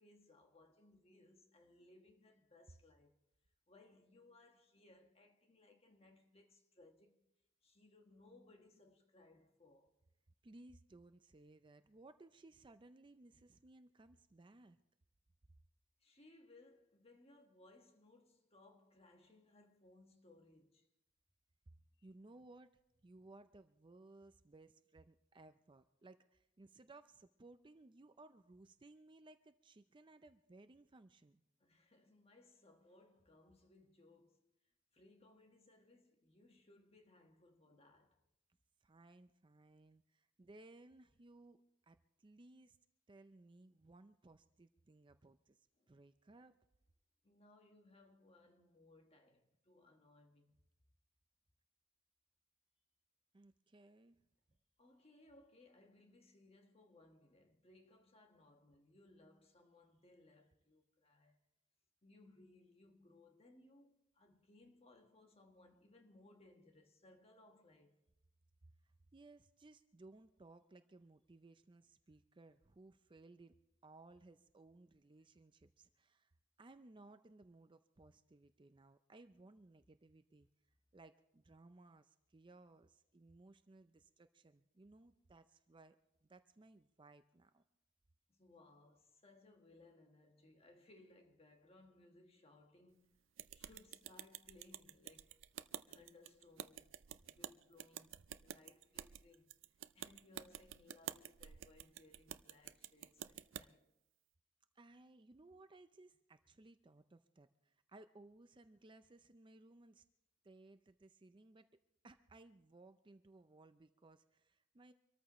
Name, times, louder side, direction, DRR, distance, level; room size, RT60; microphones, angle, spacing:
voice 1, 0.0-3.2 3.7-7.2 7.6-10.0 16.0-20.9 22.0-22.1 31.6-34.5 34.9-38.2 45.8-46.0 47.2-50.6 54.8-61.4 62.0-68.0 88.3-93.2 93.5-95.4 95.9-97.0 97.2-99.5 99.9-103.8, left 2 dB, 30° left, 1.5 m, -65 dB
voice 2, 10.4-14.8 22.0-22.7 23.0-31.4 38.8-41.6 41.8-42.8 43.1-46.5 53.3-54.2 68.8-73.6 73.8-76.3 76.6-80.5 80.9-87.6 104.8-110.0 110.4-111.7 112.0-114.9, right 2 dB, 25° right, 0.5 m, -61 dB
sound 1, 93.4-103.6, right 10 dB, 75° right, 0.5 m, -50 dB
26.0 x 13.5 x 3.1 m
head